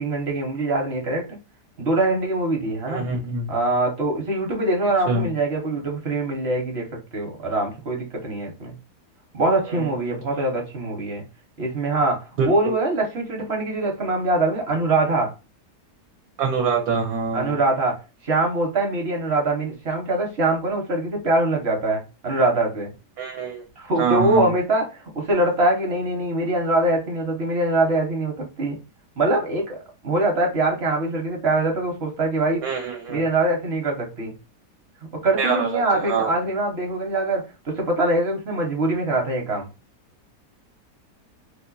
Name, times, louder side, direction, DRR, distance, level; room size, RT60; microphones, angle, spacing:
voice 1, 0.0-1.4 1.8-3.0 3.5-8.8 9.3-11.2 11.6-15.3 17.3-18.0 18.2-22.9 23.8-28.8 29.2-32.7 33.1-34.3 35.1-39.7, right 2 dB, 45° right, 1.1 m, -23 dB
voice 2, 2.9-3.5 5.1-5.3 9.6-10.2 12.4-12.7 16.4-17.6 23.2-23.6 24.0-24.5 32.6-33.3 35.4-36.3, right 4 dB, 65° right, 1.1 m, -25 dB
2.8 x 2.4 x 3.8 m
omnidirectional pair, 1.9 m